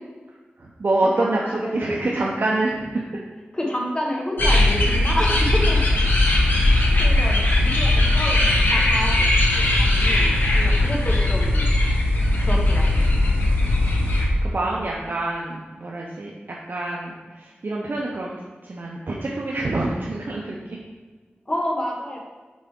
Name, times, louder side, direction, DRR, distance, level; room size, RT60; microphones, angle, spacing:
voice 1, 0.6-3.2 7.7-7.8 14.4-18.3 18.6-20.8, right 2 dB, 55° right, -3 dB, 0.7 m, -26 dB
voice 2, 1.2-2.1 3.5-5.8 7.0-7.3 7.6-11.7 12.4-13.1 21.5-22.2, equal, 25° left, -1 dB, 1.3 m, -29 dB
sound 1, 4.4-14.3, left 2 dB, 55° left, 1.1 m, -19 dB
6.2 x 5.0 x 3.7 m, 1.3 s
wide cardioid pair, 95°, 4 cm